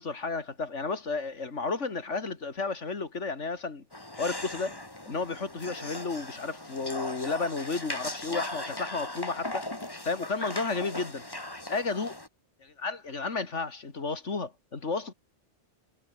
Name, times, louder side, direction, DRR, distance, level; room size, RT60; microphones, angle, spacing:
voice 1, 0.0-3.8 4.2-4.7 5.0-9.6 10.0-11.2 11.7-12.2 12.8-15.1, left 4 dB, 90° left, 2.8 m, -32 dB
sound 1, 3.9-12.3, left 1 dB, 20° left, 2.4 m, -38 dB
omnidirectional pair, 1.2 m